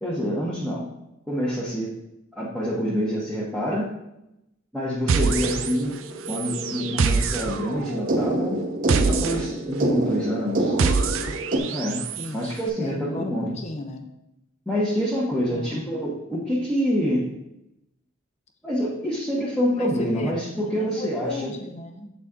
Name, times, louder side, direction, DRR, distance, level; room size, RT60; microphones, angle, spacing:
voice 1, 0.0-0.8 1.3-1.9 2.3-3.9 4.7-5.9 6.3-8.6 9.1-10.8 11.7-12.0 12.3-13.5 14.7-17.3 18.6-21.5, equal, 5° left, -7 dB, 1.0 m, -26 dB
sound 1, 5.1-11.6, right 1 dB, 40° right, 0.7 m, -28 dB
sound 2, 5.1-6.0 6.2-12.3, right 5 dB, 80° right, 0.5 m, -26 dB
voice 2, 12.8-14.1 15.4-15.9 19.7-22.1, left 1 dB, 35° left, 6 dB, 0.7 m, -35 dB
7.4 x 4.2 x 3.6 m, 0.86 s
head